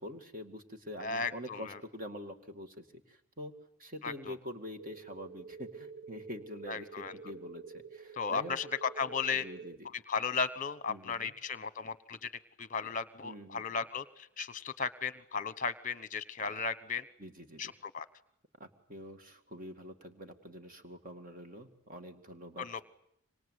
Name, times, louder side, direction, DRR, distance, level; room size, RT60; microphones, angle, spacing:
voice 1, 0.0-3.5 3.8-8.6 9.3-9.9 10.9-11.3 13.2-13.7 17.2-17.8 18.6-22.8, equal, 40° right, 7 dB, 2.2 m, -46 dB
voice 2, 1.0-1.8 4.0-4.3 6.7-7.1 8.2-9.4 9.9-12.3 12.6-17.0 17.6-18.0 22.6-22.8, left 5 dB, 35° left, 16 dB, 1.0 m, -35 dB
sound 1, 4.8-9.8, right 5 dB, 80° right, 1.0 m, -49 dB
27.0 x 25.0 x 8.3 m, 0.77 s
head